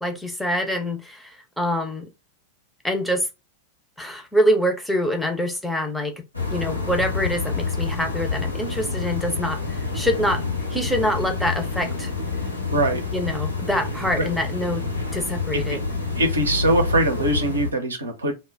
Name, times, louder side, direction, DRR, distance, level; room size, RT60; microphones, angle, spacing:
voice 1, 0.0-2.1 2.8-3.3 4.0-6.2 6.5-10.4 10.7-12.1 13.1-14.9 15.1-15.8, equal, 5° left, 0.5 m, -25 dB
sound 1, 6.3-17.7, left 4 dB, 85° left, 0.8 m, -28 dB
voice 2, 12.7-13.0 14.2-14.3 15.5-15.8 16.2-18.3, right 1 dB, 75° right, 0.6 m, -22 dB
2.1 x 2.1 x 3.2 m
figure-of-eight pair, 90°, 0 cm